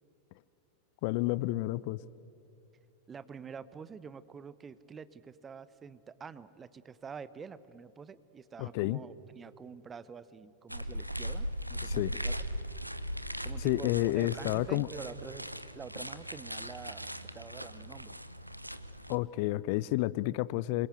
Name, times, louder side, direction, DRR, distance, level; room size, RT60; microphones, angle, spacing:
voice 1, 1.0-2.0 8.6-9.0 11.8-12.1 13.6-14.9 19.1-20.9, left 18 dB, 45° left, 20 dB, 0.5 m, -30 dB
voice 2, 3.1-12.3 13.4-15.4 15.7-17.1 17.3-18.2, right 6 dB, 20° right, 16 dB, 0.9 m, -47 dB
sound 1, 10.7-19.2, equal, 90° right, 0.9 m, -39 dB
26.5 x 23.0 x 8.2 m, 2.8 s
figure-of-eight pair, 90°, 0 cm